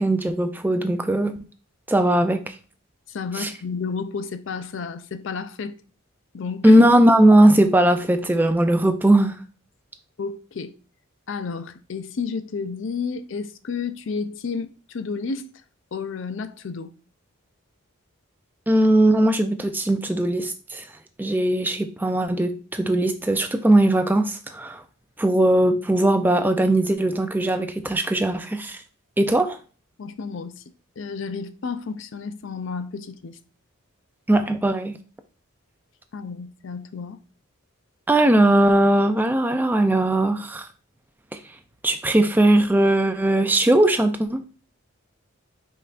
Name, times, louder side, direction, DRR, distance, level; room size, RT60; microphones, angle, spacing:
voice 1, 0.0-1.4 1.9-2.5 3.4-3.5 6.6-9.3 18.7-20.8 21.2-24.8 25.2-28.8 29.2-29.6 34.3-34.9 38.1-40.7 41.8-44.4, right 1 dB, 10° right, 0.3 m, -19 dB
voice 2, 3.1-5.8 6.3-6.8 10.2-10.7 11.3-15.5 15.9-16.9 30.0-30.6 31.0-33.4 36.1-37.2, left 5 dB, 60° left, 0.4 m, -31 dB
5.5 x 3.9 x 2.5 m
head